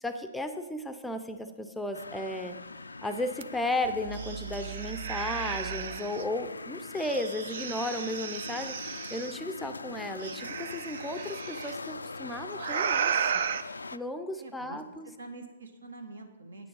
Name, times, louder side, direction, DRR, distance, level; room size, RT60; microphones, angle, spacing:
voice 1, 0.0-2.5 3.0-13.1 13.9-15.1, left 1 dB, 5° left, 8 dB, 0.5 m, -34 dB
sound 1, 1.9-14.0, left 3 dB, 85° left, 0.3 m, -42 dB
sound 2, 3.4-3.5 3.8-6.2 7.0-9.3 10.2-11.7 12.6-13.6, right 7 dB, 60° right, 0.5 m, -34 dB
voice 2, 14.4-14.8 15.2-16.7, right 3 dB, 75° right, 6 dB, 1.4 m, -45 dB
9.0 x 6.7 x 5.4 m, 1.2 s
figure-of-eight pair, 125°, 0 cm